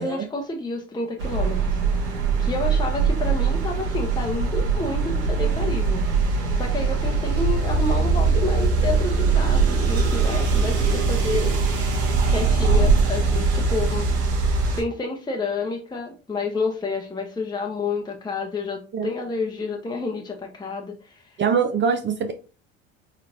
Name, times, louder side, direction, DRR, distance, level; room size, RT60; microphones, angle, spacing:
voice 1, 0.0-11.5 12.3-14.1 14.8-21.4, left 3 dB, 15° left, 1 dB, 0.8 m, -30 dB
sound 1, 1.2-14.8, right 4 dB, 80° right, 1.3 m, -21 dB
voice 2, 21.4-22.3, right 6 dB, 35° right, 6 dB, 0.6 m, -23 dB
4.1 x 3.2 x 2.5 m, 0.35 s
hypercardioid pair, 80°, 33 cm